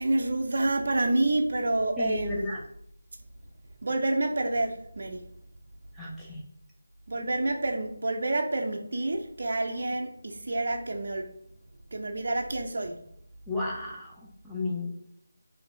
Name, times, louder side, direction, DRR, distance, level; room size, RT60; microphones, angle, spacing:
voice 1, 0.0-2.5 3.8-5.2 7.1-11.3 11.9-13.0, right 2 dB, 55° right, 2 dB, 0.4 m, -28 dB
voice 2, 2.0-2.6 6.0-6.4 13.5-14.9, left 2 dB, ahead, -7 dB, 0.6 m, -33 dB
4.1 x 2.6 x 2.6 m, 0.72 s
figure-of-eight pair, 160°, 0 cm